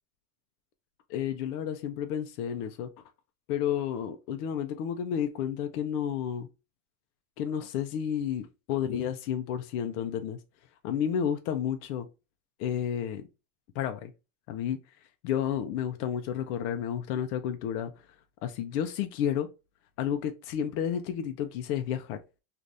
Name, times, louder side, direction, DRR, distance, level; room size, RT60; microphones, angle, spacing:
voice 1, 1.1-2.9 3.5-6.5 7.4-10.4 10.8-12.1 12.6-13.2 13.7-14.1 14.5-14.8 15.2-17.9 18.4-19.5 20.0-22.2, left 9 dB, 65° left, 0.6 m, -31 dB
2.6 x 2.5 x 3.2 m
supercardioid pair, 155°, 48 cm